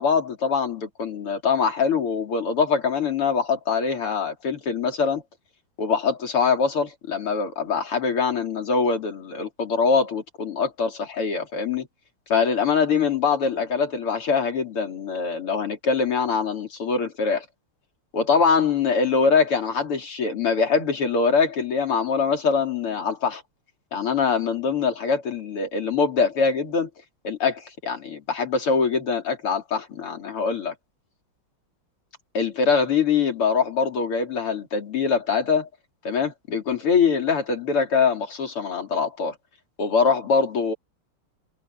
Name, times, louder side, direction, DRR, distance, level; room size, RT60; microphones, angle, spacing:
voice 1, 0.0-5.2 5.8-11.9 12.3-17.5 18.1-23.4 23.9-26.9 27.2-30.7 32.3-35.7 36.0-39.3 39.8-40.7, left 5 dB, 90° left, 4.2 m, -23 dB
omnidirectional pair, 2.4 m